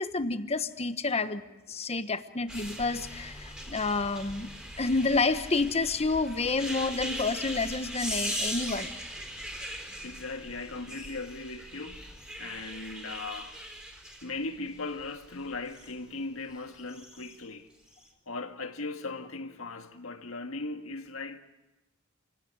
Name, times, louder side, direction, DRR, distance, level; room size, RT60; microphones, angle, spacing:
voice 1, 0.0-1.4 1.7-4.5 4.8-8.9, left 3 dB, 30° left, 1.1 m, -29 dB
sound 1, 2.5-15.9 16.8-17.3 17.9-18.0, equal, 5° right, 4.1 m, -39 dB
voice 2, 10.0-13.6 14.2-17.7 18.3-21.4, left 3 dB, 75° left, 1.8 m, -38 dB
27.5 x 17.0 x 9.6 m
head